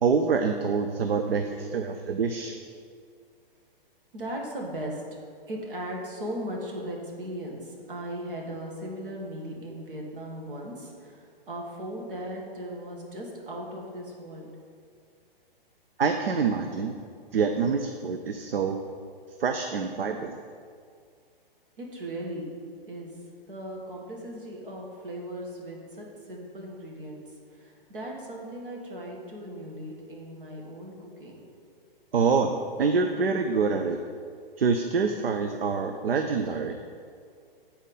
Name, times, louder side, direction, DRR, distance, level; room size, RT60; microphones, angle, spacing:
voice 1, 0.0-2.6 16.0-17.0 17.3-18.8 19.4-20.4 32.1-34.0 34.6-36.8, right 5 dB, 80° right, 5 dB, 0.6 m, -26 dB
voice 2, 1.3-1.8 4.1-14.5 21.8-23.1 23.5-31.4, right 1 dB, 65° right, -1 dB, 1.8 m, -38 dB
8.2 x 4.4 x 5.5 m, 2.2 s
figure-of-eight pair, 120°, 29 cm